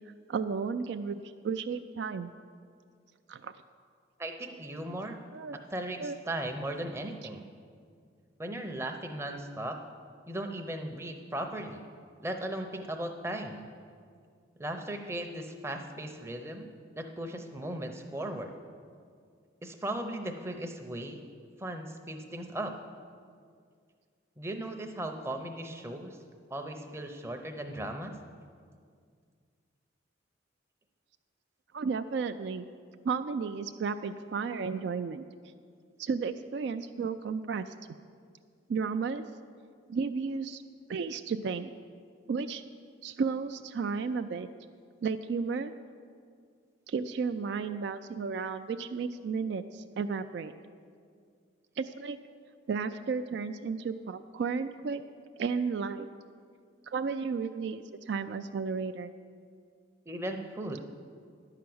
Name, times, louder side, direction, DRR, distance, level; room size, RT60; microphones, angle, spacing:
voice 1, 0.3-2.3 3.3-3.5 5.3-5.6 6.0-6.2 31.7-32.7 33.0-35.2 36.0-37.7 38.7-39.3 39.9-40.6 40.9-41.7 42.3-42.6 43.0-44.5 45.0-45.7 46.9-50.5 51.8-52.2 52.7-55.0 55.4-56.1 56.9-59.1, right 5 dB, 60° right, 9 dB, 0.3 m, -33 dB
voice 2, 4.2-5.2 5.7-7.4 8.4-9.8 10.3-11.8 12.2-13.7 14.6-16.7 17.0-18.5 19.6-21.2 21.6-22.8 24.4-26.2 26.5-28.1 60.1-60.8, right 1 dB, 15° right, 4 dB, 0.6 m, -37 dB
11.0 x 5.8 x 7.7 m, 2.1 s
head